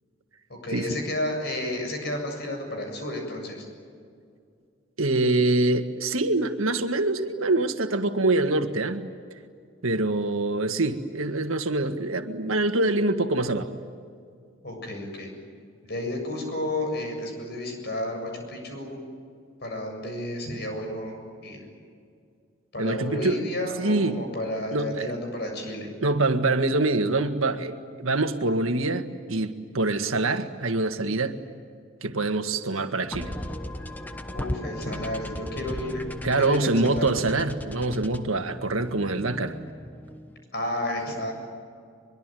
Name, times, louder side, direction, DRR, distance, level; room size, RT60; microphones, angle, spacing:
voice 1, 0.5-3.7 14.6-15.3 15.8-19.0 19.6-21.6 22.7-25.9 34.3-37.1 40.5-41.3, left 1 dB, 50° left, 3 dB, 7.5 m, -32 dB
voice 2, 5.0-9.1 9.8-13.7 22.8-23.4 23.8-24.2 24.7-25.1 26.0-31.4 32.0-33.3 36.2-39.6, right 2 dB, 90° right, 7 dB, 1.8 m, -25 dB
sound 1, 33.1-40.4, left 1 dB, 10° left, 0.9 m, -37 dB
23.5 x 23.0 x 9.3 m, 2.2 s
head